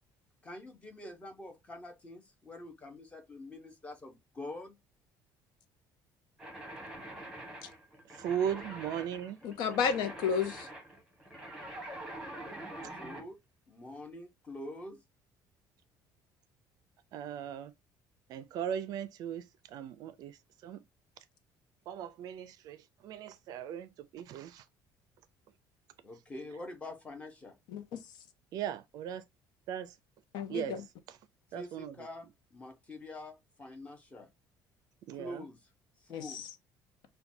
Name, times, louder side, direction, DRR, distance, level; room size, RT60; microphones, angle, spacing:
voice 1, 0.4-4.8 13.0-13.4 13.7-15.0 26.0-27.5 31.5-34.3 35.2-35.6 36.0-36.4, left 1 dB, 15° left, 0.8 m, -45 dB
sound 1, 6.4-13.3, right 1 dB, 5° right, 1.2 m, -45 dB
voice 2, 8.1-9.4 17.1-17.7 18.3-20.8 21.9-24.6 28.5-29.2 29.7-30.0 30.5-31.2 31.5-32.1 35.1-35.4, right 9 dB, 55° right, 0.4 m, -38 dB
voice 3, 9.4-10.7 27.7-28.0 30.3-30.8 36.1-36.4, left 7 dB, 65° left, 0.7 m, -32 dB
5.8 x 2.2 x 2.6 m
cardioid pair, 170°, 8 cm